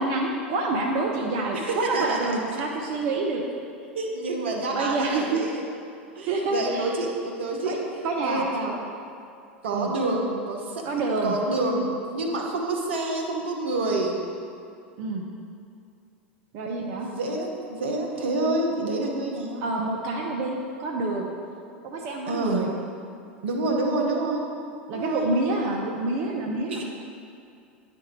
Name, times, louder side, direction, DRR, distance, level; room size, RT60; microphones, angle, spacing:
voice 1, 0.0-3.4 4.7-5.4 6.3-6.9 7.6-7.8 8.0-8.5 9.7-9.9 10.8-11.3 15.0-15.2 16.5-17.1 19.6-21.3 21.8-22.7 24.9-26.8, right 2 dB, 55° right, 0 dB, 0.7 m, -27 dB
voice 2, 1.5-2.6 3.9-5.6 6.2-8.7 9.6-10.8 11.2-14.2 17.0-19.6 22.3-22.6 23.4-24.4 24.9-25.2 26.7-26.8, right 2 dB, 75° right, 0 dB, 1.0 m, -28 dB
10.5 x 3.5 x 4.4 m, 2.4 s
hypercardioid pair, 85°, 6 cm